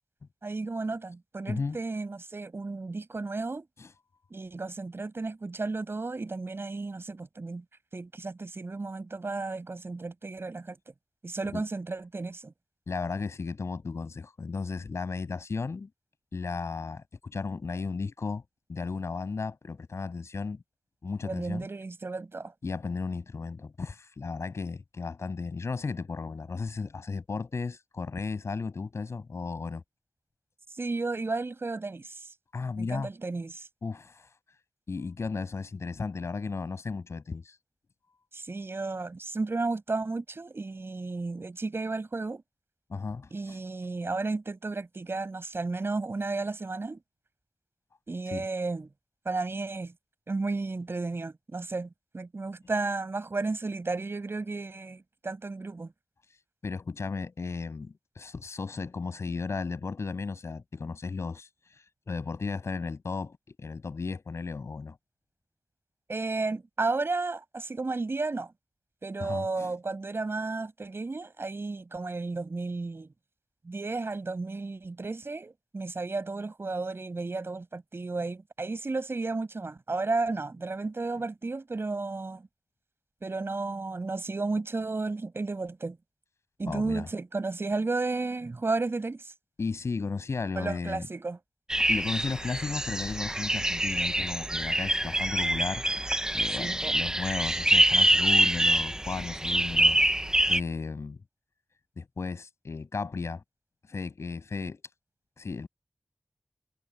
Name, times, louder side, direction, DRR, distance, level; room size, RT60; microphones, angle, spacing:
voice 1, 0.4-3.7 4.3-7.6 7.9-10.8 11.2-12.5 21.2-22.5 30.8-32.1 32.8-33.7 38.3-42.4 43.3-47.0 48.1-48.9 49.2-49.9 50.3-51.9 52.1-55.9 66.1-68.5 69.0-73.1 73.6-82.4 83.2-86.0 86.6-89.3 90.5-91.4 96.6-96.9, right 3 dB, 60° right, 6.6 m, -33 dB
voice 2, 1.5-1.8 3.8-3.9 11.5-11.6 12.9-15.9 16.3-18.4 18.7-20.6 21.0-21.7 22.6-29.8 32.5-33.1 33.8-34.3 34.9-37.5 42.9-43.6 48.3-48.5 56.6-61.5 62.1-65.0 69.2-69.7 86.6-87.1 89.6-91.1 91.8-95.8 96.3-100.0 100.5-101.2 102.0-103.4 103.9-104.8 105.4-105.7, left 4 dB, 85° left, 7.9 m, -34 dB
sound 1, 91.7-100.6, right 1 dB, 15° right, 1.1 m, -25 dB
wide cardioid pair, 60°, 5 cm